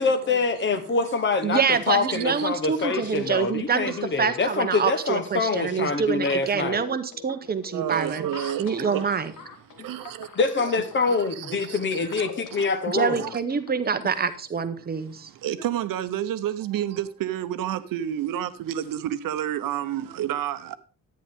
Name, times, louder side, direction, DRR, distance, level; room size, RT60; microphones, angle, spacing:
voice 1, 0.0-1.6 1.9-6.8 9.8-9.9 10.3-13.2, left 4 dB, 35° left, 1.0 m, -25 dB
voice 2, 1.4-8.3 8.6-9.3 12.9-15.3, right 6 dB, 30° right, 0.8 m, -26 dB
voice 3, 2.1-2.5 7.7-9.0 9.8-10.3 10.6-10.7 11.1-12.2 12.5-12.6 13.2-13.3 15.4-20.8, right 11 dB, 80° right, 0.8 m, -30 dB
sound 1, 2.8-13.8, left 6 dB, 70° left, 1.4 m, -44 dB
11.0 x 9.4 x 3.6 m
wide cardioid pair, 175°, 33 cm